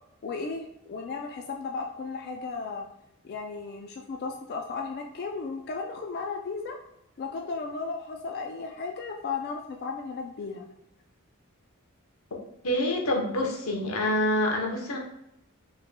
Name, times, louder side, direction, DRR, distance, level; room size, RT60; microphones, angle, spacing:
voice 1, 0.2-2.9 3.2-6.8 7.2-10.7, left 4 dB, 50° left, 1 dB, 0.4 m, -35 dB
voice 2, 12.6-15.0, left 1 dB, 90° left, 0 dB, 0.9 m, -26 dB
4.8 x 3.1 x 2.2 m, 0.81 s
head